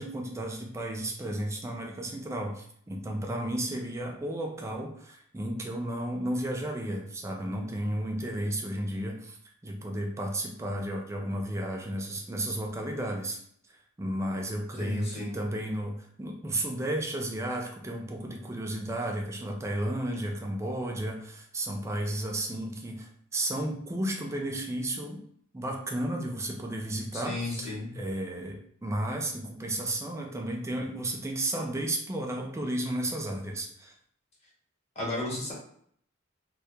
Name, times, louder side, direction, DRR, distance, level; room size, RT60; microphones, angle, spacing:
voice 1, 0.0-9.4 9.6-13.4 14.0-25.2 25.5-33.9, right 1 dB, 15° right, 1 dB, 0.3 m, -33 dB
voice 2, 14.7-15.3 27.1-27.9 35.0-35.5, left 2 dB, 30° left, -4 dB, 0.9 m, -34 dB
2.2 x 2.2 x 2.7 m, 0.64 s
head